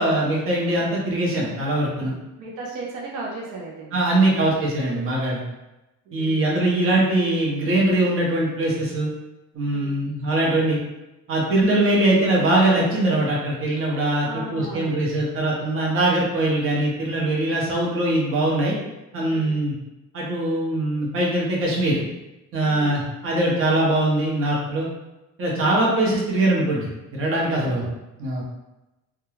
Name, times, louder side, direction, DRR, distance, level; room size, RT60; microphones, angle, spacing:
voice 1, 0.0-2.1 3.9-5.4 6.1-9.1 9.5-10.8 11.3-18.7 19.1-19.7 20.1-22.0 22.5-24.9 25.4-27.9 28.2-28.4, right 1 dB, 40° right, -3 dB, 0.7 m, -22 dB
voice 2, 2.0-4.0 6.1-6.6 9.6-10.0 14.2-15.0 19.3-19.6 22.6-23.0 25.5-25.8 27.5-27.8, right 2 dB, 75° right, -2 dB, 0.6 m, -36 dB
2.3 x 2.2 x 3.1 m, 0.99 s
cardioid pair, 160°, 31 cm